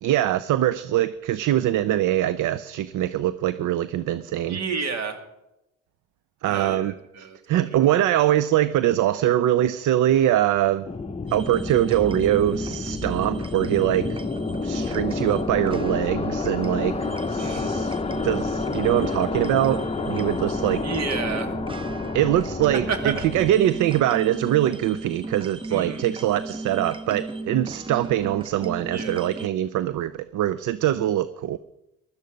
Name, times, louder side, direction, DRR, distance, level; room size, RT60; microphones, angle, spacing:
voice 1, 0.0-4.6 6.4-10.9 11.3-14.2 14.6-17.0 17.3-18.0 18.2-20.8 22.1-31.6, right 12 dB, 75° right, 15 dB, 0.6 m, -23 dB
voice 2, 4.4-5.2 6.4-7.4 8.1-8.2 17.4-17.8 20.8-21.5 22.9-23.1 25.7-26.1 28.9-29.2, right 5 dB, 60° right, 6 dB, 2.4 m, -30 dB
sound 1, 10.8-23.6, left 4 dB, 20° left, 0.7 m, -30 dB
sound 2, 11.3-29.5, right 2 dB, 15° right, 0.7 m, -35 dB
16.0 x 12.0 x 5.2 m, 0.92 s
cardioid pair, 90°, 30 cm